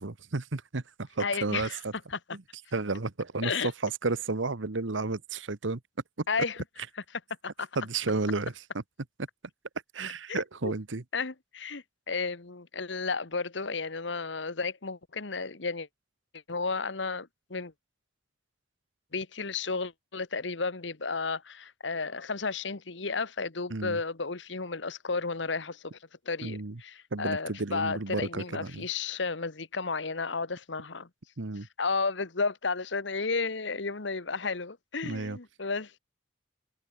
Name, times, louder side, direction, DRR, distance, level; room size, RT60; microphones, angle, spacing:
voice 1, 0.0-1.9 2.3-2.4 2.7-5.8 7.7-8.6 9.9-11.0 23.7-24.0 26.4-26.8 27.1-28.9 31.4-31.7 35.0-35.4, right 3 dB, 80° right, 1.2 m, -32 dB
voice 2, 1.2-1.8 2.1-2.2 3.4-3.7 6.3-6.6 7.6-7.7 10.3-10.7 11.1-15.9 16.3-17.7 19.1-26.0 26.2-31.1 31.8-36.0, left 4 dB, 70° left, 1.4 m, -33 dB
head